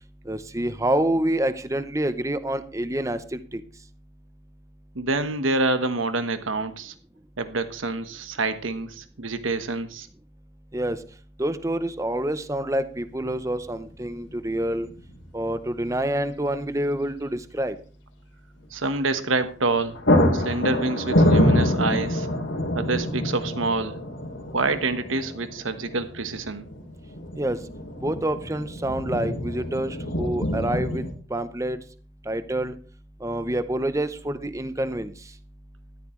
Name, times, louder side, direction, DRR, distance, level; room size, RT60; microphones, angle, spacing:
voice 1, 0.3-3.6 10.7-11.0 11.4-14.9 15.3-17.8 27.4-27.6 28.0-31.8 32.3-32.7 33.2-35.1, right 1 dB, 15° right, 12 dB, 0.7 m, -27 dB
voice 2, 4.9-6.9 7.4-10.1 18.7-20.0 20.3-22.3 22.7-24.0 24.5-26.7, right 3 dB, 85° right, 10 dB, 1.3 m, -27 dB
sound 1, 13.1-13.2 14.8-15.2 15.5-15.6 19.3-19.5 19.7-31.1, left 1 dB, 70° left, 2.9 m, -26 dB
14.0 x 13.5 x 3.2 m, 0.40 s
head